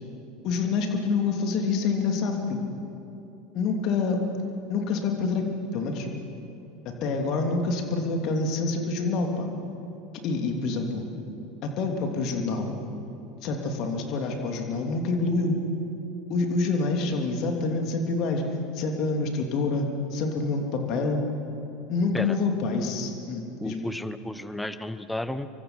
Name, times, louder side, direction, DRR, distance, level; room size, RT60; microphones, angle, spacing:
voice 1, 0.4-2.6 3.5-4.2 4.7-6.1 6.8-9.5 10.2-11.1 11.6-12.8 13.4-15.6 16.3-18.4 18.7-21.3 21.9-23.8, left 3 dB, 45° left, 3 dB, 3.1 m, -27 dB
voice 2, 23.6-25.5, left 1 dB, 5° left, 12 dB, 1.0 m, -32 dB
28.0 x 24.0 x 5.9 m, 2.8 s
figure-of-eight pair, 75°, 0 cm